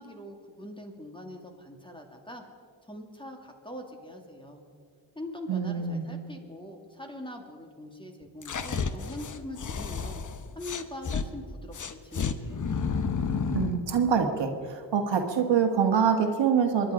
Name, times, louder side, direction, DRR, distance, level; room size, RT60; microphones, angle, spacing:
voice 1, 0.0-2.4 2.8-4.6 5.1-10.2 10.5-12.6, left 1 dB, 10° left, 3 dB, 2.4 m, -42 dB
voice 2, 5.5-6.0 13.5-16.9, right 7 dB, 70° right, 5 dB, 1.7 m, -25 dB
sound 1, 8.4-11.3 11.7-13.8, left 5 dB, 40° left, 1.0 m, -31 dB
24.5 x 11.0 x 5.1 m, 2.1 s
cardioid pair, 80°, 45 cm